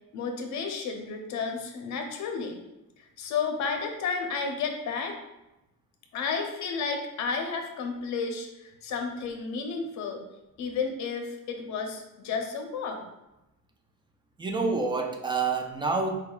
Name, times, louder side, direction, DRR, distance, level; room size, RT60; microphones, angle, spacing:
voice 1, 0.1-2.6 3.0-5.2 6.1-10.2 10.6-13.0, left 5 dB, 60° left, 4 dB, 0.7 m, -32 dB
voice 2, 14.4-16.2, right 4 dB, 15° right, 3 dB, 0.3 m, -27 dB
4.5 x 3.4 x 2.3 m, 0.93 s
cardioid pair, 150°, 33 cm